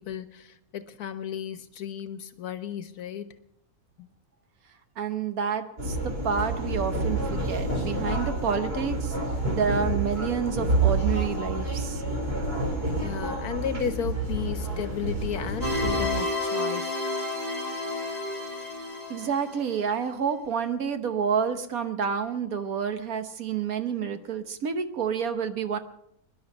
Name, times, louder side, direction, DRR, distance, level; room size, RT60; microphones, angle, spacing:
voice 1, 0.0-3.3 4.0-4.1 13.0-17.0, left 8 dB, 80° left, 11 dB, 1.6 m, -34 dB
voice 2, 5.0-9.2 9.5-12.0 19.1-25.8, right 7 dB, 70° right, 9 dB, 1.4 m, -29 dB
sound 1, 5.8-16.1, right 2 dB, 40° right, 3.8 m, -28 dB
sound 2, 15.6-19.8, left 2 dB, 25° right, 3.4 m, -30 dB
23.5 x 11.0 x 5.4 m, 0.77 s
omnidirectional pair, 1.6 m